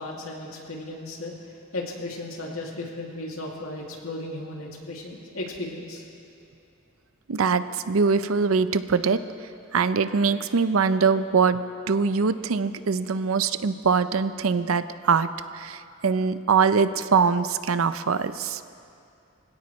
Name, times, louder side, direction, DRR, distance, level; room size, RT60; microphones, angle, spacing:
voice 1, 0.0-1.3 1.7-6.0, left 2 dB, 90° left, -2 dB, 2.5 m, -35 dB
voice 2, 7.3-9.2 9.7-18.6, right 5 dB, 75° right, 13 dB, 0.6 m, -23 dB
23.5 x 17.0 x 3.2 m, 2.5 s
head